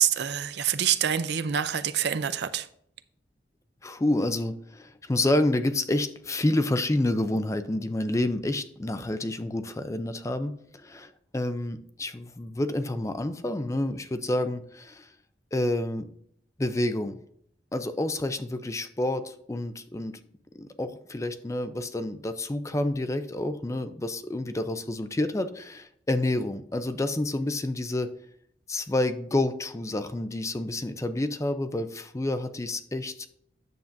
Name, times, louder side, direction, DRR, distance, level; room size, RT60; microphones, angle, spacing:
voice 1, 0.0-2.7, right 9 dB, 65° right, 0.5 m, -26 dB
voice 2, 3.8-10.5 10.8-15.1 15.5-16.1 16.6-17.2 17.7-20.2 20.5-28.1 28.7-33.3, left 1 dB, 20° left, 0.5 m, -29 dB
9.3 x 7.1 x 2.6 m
head